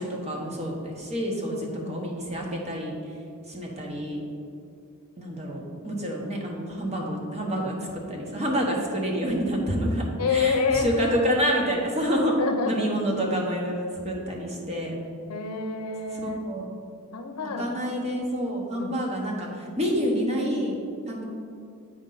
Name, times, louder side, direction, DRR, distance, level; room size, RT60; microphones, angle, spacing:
voice 1, 0.0-1.6 1.9-2.9 3.5-4.2 5.2-7.7 8.1-10.0 10.3-12.4 12.7-15.0 16.1-16.7 17.6-20.7 21.1-21.2, equal, 30° right, -1 dB, 1.1 m, -28 dB
voice 2, 1.5-2.1 10.2-11.0 12.4-13.0 15.3-16.4 17.1-17.7 18.8-18.9, left 4 dB, 75° left, 5 dB, 0.6 m, -28 dB
7.9 x 5.3 x 3.9 m, 2.4 s
head